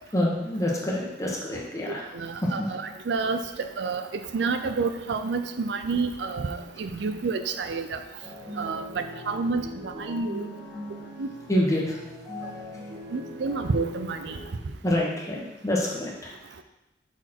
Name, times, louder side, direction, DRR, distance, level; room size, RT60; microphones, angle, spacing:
voice 1, 0.0-2.9 10.9-11.1 11.5-12.0 14.8-16.3, left 1 dB, 15° left, -3 dB, 1.1 m, -27 dB
voice 2, 2.1-4.1 4.3-8.0 8.6-10.5 11.2-11.3 13.1-14.4, right 4 dB, 70° right, 8 dB, 0.4 m, -29 dB
sound 1, 8.2-14.4, left 1 dB, 10° right, 1.4 m, -40 dB
6.0 x 4.3 x 4.4 m, 0.96 s
head